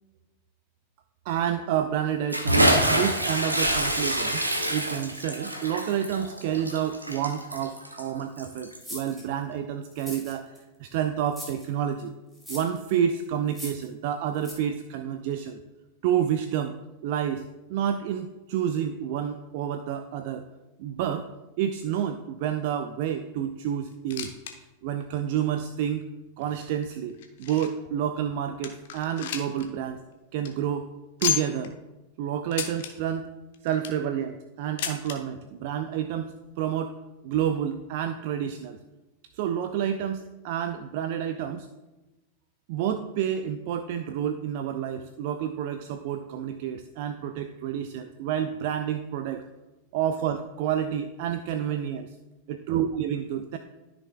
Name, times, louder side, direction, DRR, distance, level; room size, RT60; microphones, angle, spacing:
voice 1, 1.3-4.4 4.7-10.5 10.8-12.1 12.5-15.6 16.0-16.8 17.0-20.5 20.8-21.3 21.6-24.4 24.8-26.0 26.4-30.0 30.3-30.9 31.2-31.7 32.2-33.3 33.6-36.3 36.6-36.9 37.2-38.8 39.3-41.7 42.7-49.4 49.9-52.1 52.5-53.6, right 9 dB, 50° right, 9 dB, 0.4 m, -29 dB
Bathtub (filling or washing) / Splash splatter, 2.3-8.9, equal, 85° right, 1.1 m, -26 dB
sound 1, 8.8-9.2 9.9-10.6 11.3-11.7 12.3-12.8 13.5-13.9 14.4-14.5, equal, ahead, 2.4 m, -40 dB
sound 2, 23.9-24.5 24.8-24.9 25.6-25.7 26.4-27.9 28.3-28.4 28.6-29.7 30.0-30.1 30.3-30.5 31.2-31.7 32.5-32.9 33.5-34.1 34.8-35.2 36.1-36.2 36.4-36.5 37.3-37.4, left 10 dB, 55° left, 1.0 m, -32 dB
13.5 x 6.1 x 2.2 m, 1.1 s
figure-of-eight pair, 90°, 0 cm